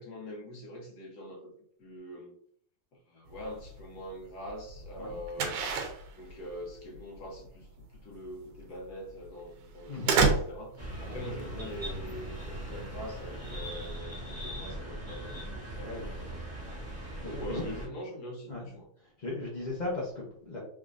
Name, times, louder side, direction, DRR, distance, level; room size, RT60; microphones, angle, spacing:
voice 1, 0.0-1.5 1.8-2.4 3.1-5.5 6.2-16.4 17.2-18.9, equal, 60° left, -1 dB, 1.4 m, -43 dB
sound 1, 3.3-13.9, right 4 dB, 70° right, 1.3 m, -33 dB
voice 2, 5.0-5.5 9.9-10.1 11.0-11.2 15.8-16.1 16.6-16.8 17.2-17.6 18.5-18.6 19.2-20.6, left 2 dB, 85° left, -4 dB, 0.4 m, -37 dB
sound 2, 10.8-17.9, right 1 dB, 15° right, 0.6 m, -40 dB
3.6 x 3.4 x 2.5 m, 0.62 s
omnidirectional pair, 2.1 m